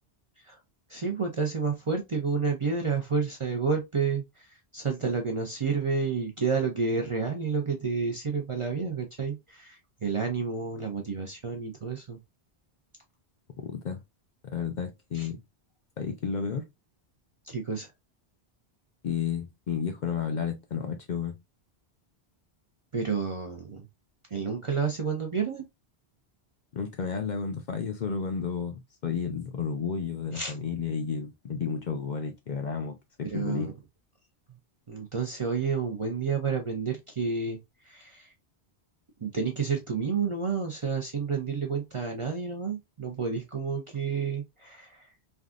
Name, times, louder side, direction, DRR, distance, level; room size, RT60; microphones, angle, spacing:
voice 1, 0.9-12.2 15.1-15.3 17.5-17.9 22.9-23.9 24.3-25.7 30.3-30.5 33.2-33.7 34.9-37.6 37.8-38.3 39.2-45.0, right 5 dB, 40° right, 0.5 m, -30 dB
voice 2, 13.6-14.0 14.5-15.4 16.0-16.7 19.0-21.4 26.7-33.7, left 6 dB, 55° left, 0.6 m, -32 dB
3.5 x 2.3 x 2.4 m
omnidirectional pair, 1.1 m